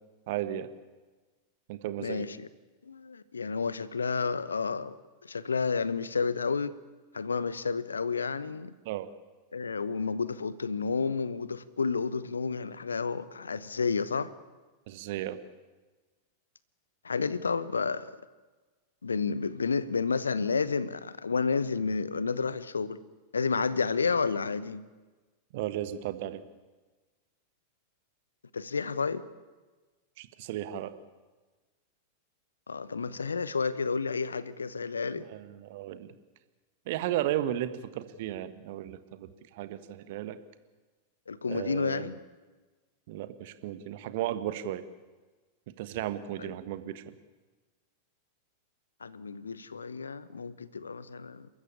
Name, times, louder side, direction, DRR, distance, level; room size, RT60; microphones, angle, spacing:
voice 1, 0.3-0.7 1.7-2.3 8.8-9.1 14.9-15.4 25.5-26.4 30.2-30.9 35.3-36.1 36.9-40.4 41.5-42.0 43.1-44.8 45.8-47.0, right 12 dB, 50° right, 1.4 m, -34 dB
voice 2, 2.0-2.5 2.8-4.9 5.2-6.7 7.1-8.7 9.5-14.3 17.0-18.2 19.0-23.0 23.3-24.8 28.5-29.2 32.7-35.3 41.3-42.2 46.4-46.5 49.0-51.5, left 5 dB, 75° left, 0.9 m, -31 dB
30.0 x 14.0 x 8.7 m
figure-of-eight pair, 90°, 0 cm